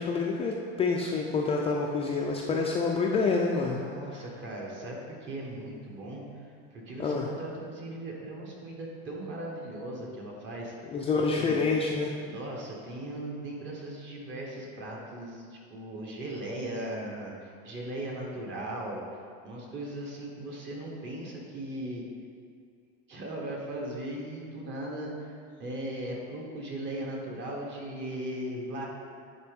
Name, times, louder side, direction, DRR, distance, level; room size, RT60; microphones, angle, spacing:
voice 1, 0.0-3.8 7.0-7.3 10.9-12.1, left 4 dB, 20° left, -1 dB, 0.4 m, -27 dB
voice 2, 3.5-10.7 11.3-11.6 12.2-22.0 23.1-28.9, right 1 dB, 35° right, -2 dB, 1.5 m, -38 dB
9.7 x 4.0 x 3.6 m, 2.2 s
supercardioid pair, 125°, 31 cm